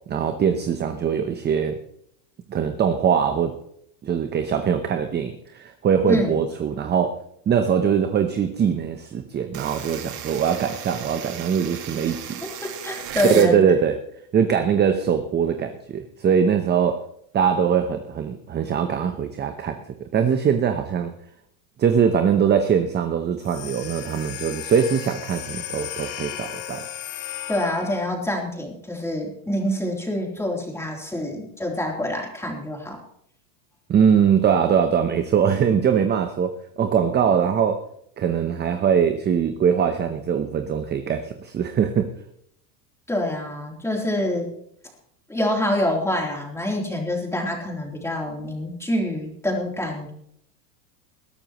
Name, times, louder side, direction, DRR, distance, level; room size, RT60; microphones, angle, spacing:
voice 1, 0.1-1.8 2.5-3.5 4.0-7.2 7.5-12.4 13.2-14.0 14.3-17.0 17.3-21.1 21.8-26.9 33.9-37.8 38.2-42.1, right 7 dB, 20° right, 8 dB, 0.8 m, -22 dB
sound 1, 9.5-13.5, right 9 dB, 45° right, 2.3 m, -35 dB
voice 2, 12.4-13.6 27.5-33.0 43.1-44.5 45.3-50.1, left 1 dB, 5° left, 0 dB, 3.4 m, -26 dB
sound 2, 23.4-28.2, left 12 dB, 60° left, 2.6 m, -35 dB
20.5 x 12.0 x 3.1 m, 0.71 s
supercardioid pair, 130°, 50 cm